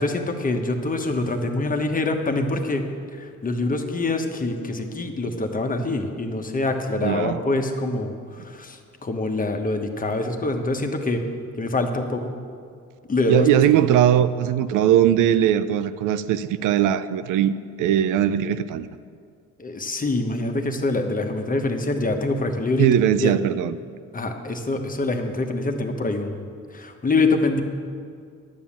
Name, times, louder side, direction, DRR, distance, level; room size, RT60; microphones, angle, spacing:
voice 1, 0.0-2.8 3.1-11.2 11.6-12.4 13.1-13.5 19.6-22.9 23.2-23.4 24.1-27.6, left 2 dB, 25° left, 1.2 m, -25 dB
voice 2, 7.0-7.4 13.3-18.9 22.8-23.7, right 10 dB, 90° right, 0.5 m, -20 dB
10.5 x 7.2 x 7.2 m
cardioid pair, 90°, 30 cm